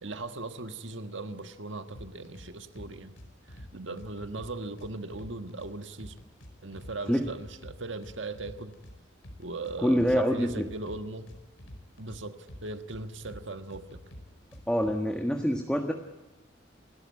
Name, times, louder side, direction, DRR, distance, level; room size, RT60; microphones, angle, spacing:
voice 1, 0.0-3.1 3.5-6.2 6.6-8.7 9.4-11.3 12.0-14.0, right 2 dB, 70° right, 8 dB, 1.5 m, -39 dB
sound 1, 1.9-2.5 2.8-3.7 4.0-5.7 6.0-6.9 7.2-8.9 9.2-10.2 10.5-12.2 12.5-13.4 13.7-14.9, equal, 85° left, 5.1 m, -47 dB
voice 2, 9.8-10.7 14.7-15.9, equal, 5° left, 3 dB, 1.4 m, -26 dB
28.5 x 13.5 x 9.7 m, 1.2 s
head